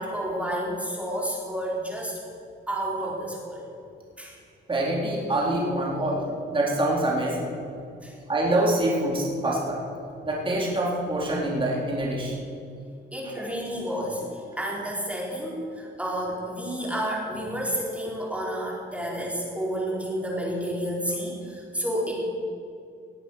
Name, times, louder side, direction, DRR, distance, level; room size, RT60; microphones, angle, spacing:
voice 1, 0.0-2.2 2.7-3.6 4.2-4.3 8.0-8.1 13.1-22.3, equal, 5° right, -3 dB, 4.4 m, -30 dB
voice 2, 4.7-7.5 8.3-9.8 10.2-12.4, right 1 dB, 25° right, -3 dB, 3.9 m, -25 dB
19.0 x 8.1 x 6.5 m, 2.4 s
cardioid pair, 90°, 20 cm